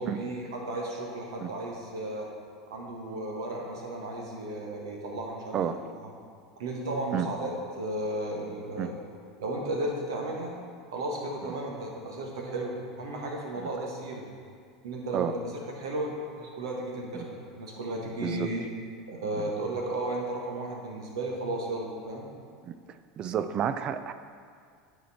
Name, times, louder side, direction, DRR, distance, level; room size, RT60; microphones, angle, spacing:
voice 1, 0.0-2.3 2.7-6.1 6.6-7.5 7.8-8.9 9.4-10.6 10.9-14.3 14.8-18.6 19.1-22.3, right 1 dB, 80° right, -1 dB, 1.4 m, -34 dB
voice 2, 23.2-24.1, right 9 dB, 40° right, 11 dB, 0.4 m, -30 dB
9.2 x 4.5 x 4.2 m, 2.1 s
hypercardioid pair, 90°, 2 cm